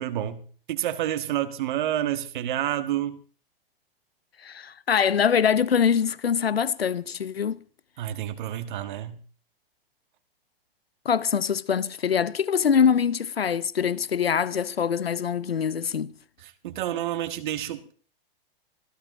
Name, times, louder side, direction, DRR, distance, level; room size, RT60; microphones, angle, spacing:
voice 1, 0.0-3.2 8.0-9.2 16.4-17.9, right 12 dB, 55° right, 1.6 m, -29 dB
voice 2, 4.4-7.6 11.0-16.1, left 7 dB, 80° left, 0.8 m, -24 dB
24.5 x 16.0 x 3.0 m
figure-of-eight pair, 105°, 30 cm